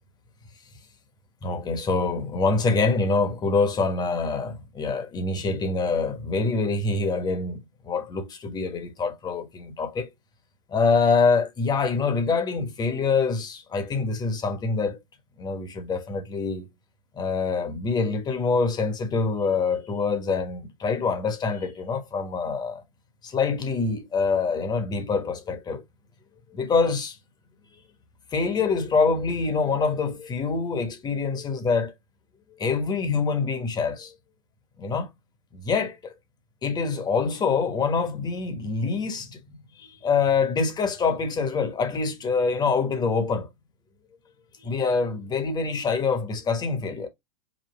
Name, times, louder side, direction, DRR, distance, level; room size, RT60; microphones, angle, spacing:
voice 1, 1.4-7.6 7.9-10.1 10.7-15.0 15.4-16.7 17.2-22.8 23.2-25.8 26.5-27.2 28.3-31.9 32.6-34.1 34.8-35.1 35.5-36.1 36.6-43.5 44.6-47.1, left 4 dB, 20° left, 1.3 m, -25 dB
5.2 x 2.4 x 3.5 m
hypercardioid pair, 125°, 18 cm